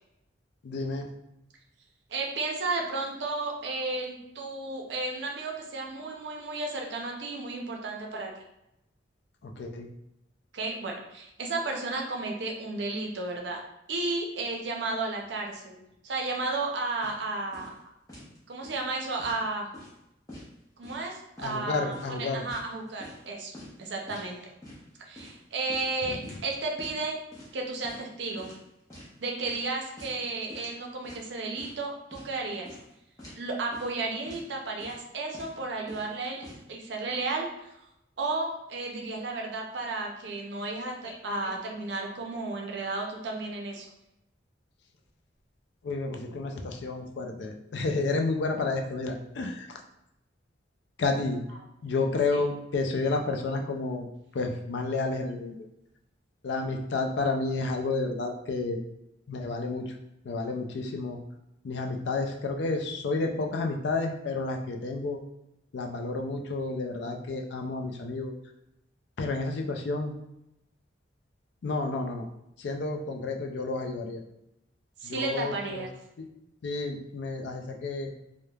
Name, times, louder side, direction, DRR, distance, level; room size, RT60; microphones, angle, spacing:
voice 1, 0.6-1.1 9.4-9.9 21.4-22.4 26.1-26.2 41.1-41.2 41.4-41.5 45.8-49.8 51.0-51.5 51.8-54.1 54.3-55.6 56.4-58.8 59.3-59.9 60.2-61.2 61.6-65.2 65.7-68.3 69.2-70.1 71.6-72.3 72.6-74.2 75.0-75.8 76.6-78.1, left 3 dB, 60° left, 4 dB, 0.4 m, -30 dB
voice 2, 2.1-8.4 10.5-13.6 13.9-17.7 18.5-19.7 20.8-23.5 23.8-24.4 25.0-27.2 27.5-28.5 29.2-32.7 33.4-37.7 38.2-43.9 75.0-75.9, right 3 dB, 65° right, 1 dB, 0.5 m, -33 dB
sound 1, 17.0-17.2 17.5-17.8 18.1-18.4 18.6-19.4 19.7-20.0 20.3-21.1 21.4-21.6 21.9-23.3 23.5-23.7 24.1-24.3 24.6-24.8 25.2-26.5 26.8-27.0 27.3-27.6 27.8-28.1 28.4-29.1 29.4-29.7 30.0-30.2 30.5-30.8 31.0-31.8 32.1-32.3 32.6-32.9 33.2-33.4 33.7-34.0 34.3-34.5 34.8-35.1 35.3-35.6 35.9-36.6, left 1 dB, 20° left, 0.6 m, -47 dB
3.1 x 2.1 x 2.3 m, 0.84 s
head